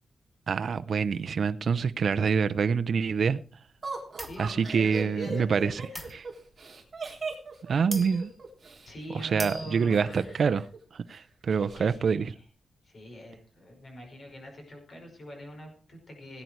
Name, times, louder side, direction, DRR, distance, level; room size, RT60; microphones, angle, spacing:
voice 1, 0.5-3.4 4.4-5.8 6.1-6.2 7.7-8.3 9.1-10.6 10.9-12.3, right 6 dB, 50° right, 0.6 m, -26 dB
Laughter, 3.8-8.9 9.9-10.8 11.1-11.2 11.5-12.0, right 4 dB, 30° right, 3.7 m, -38 dB
voice 2, 4.2-6.1 8.9-10.6 11.6-12.4 12.8-16.4, equal, 40° left, 5.3 m, -44 dB
sound 1, 4.2-4.5 6.0-6.6 7.4-7.5 7.9-8.4 8.7-8.8 9.2-10.0, equal, 5° left, 1.2 m, -40 dB
18.0 x 9.5 x 4.6 m
wide cardioid pair, 170°, 0 cm